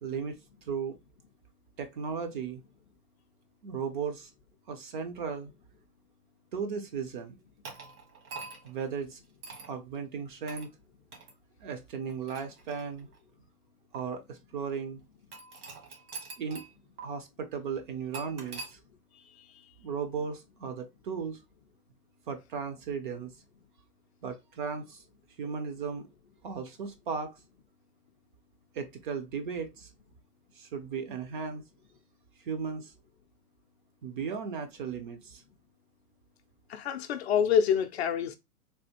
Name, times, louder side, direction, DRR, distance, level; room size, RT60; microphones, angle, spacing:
voice 1, 0.0-0.4 0.7-1.0 1.8-2.6 3.6-4.3 4.7-5.5 6.5-7.4 8.6-9.2 9.7-10.7 11.6-13.1 13.9-15.0 16.4-16.7 17.0-18.8 19.8-21.4 22.3-23.3 24.2-25.0 25.4-26.1 26.4-27.4 28.7-29.9 30.6-31.6 32.4-32.9 34.0-35.4, right 6 dB, 35° right, 0.4 m, -36 dB
sound 1, 7.6-8.8 9.4-9.7 10.5-10.7 11.1-11.3 12.0-13.2 13.9-14.0 15.3-16.7 17.0-17.1 18.1-18.7, right 4 dB, 70° right, 1.4 m, -44 dB
voice 2, 19.1-19.6 36.7-38.4, left 7 dB, 50° left, 0.4 m, -27 dB
3.4 x 2.3 x 2.8 m
hypercardioid pair, 130°, 45 cm